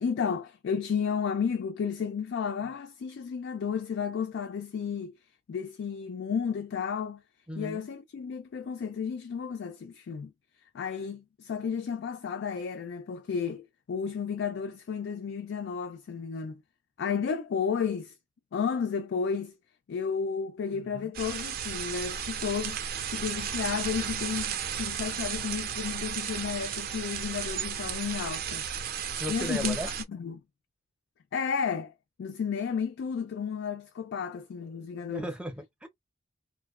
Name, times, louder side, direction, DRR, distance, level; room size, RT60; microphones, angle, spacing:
voice 1, 0.0-5.1 5.5-7.2 7.6-10.3 10.7-16.6 17.0-18.1 18.5-19.6 19.9-22.8 23.1-28.6 29.3-29.8 30.1-30.4 31.3-31.9 32.2-35.3, left 6 dB, 65° left, 0.3 m, -32 dB
voice 2, 7.5-7.8 20.7-21.1 29.2-29.9 35.1-35.9, equal, 5° right, 0.6 m, -36 dB
sound 1, 21.1-30.0, right 8 dB, 55° right, 0.4 m, -34 dB
2.6 x 2.1 x 2.3 m
head